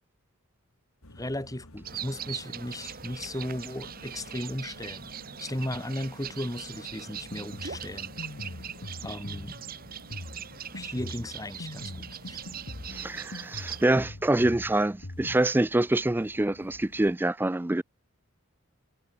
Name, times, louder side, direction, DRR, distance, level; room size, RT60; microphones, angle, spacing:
sound 1, 1.0-17.2, left 1 dB, 85° left, 3.5 m, -53 dB
voice 1, 1.2-5.1 5.4-8.1 9.0-9.6 10.7-12.4, left 1 dB, 15° left, 1.7 m, -36 dB
sound 2, 1.8-13.9, right 8 dB, 45° right, 1.7 m, -41 dB
Drum kit, 7.1-15.4, left 1 dB, 60° left, 1.5 m, -42 dB
voice 2, 12.9-17.8, right 1 dB, 10° right, 0.3 m, -26 dB
head